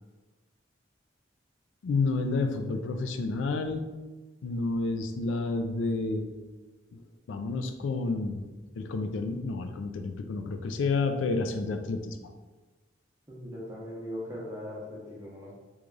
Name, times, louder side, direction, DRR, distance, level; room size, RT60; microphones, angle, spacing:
voice 1, 1.8-3.9 4.4-6.3 6.9-7.0 7.3-8.5 8.8-12.2, left 3 dB, 85° left, 6 dB, 0.4 m, -30 dB
voice 2, 13.3-15.5, left 1 dB, 15° right, -4 dB, 0.8 m, -39 dB
3.1 x 2.3 x 3.8 m, 1.2 s
head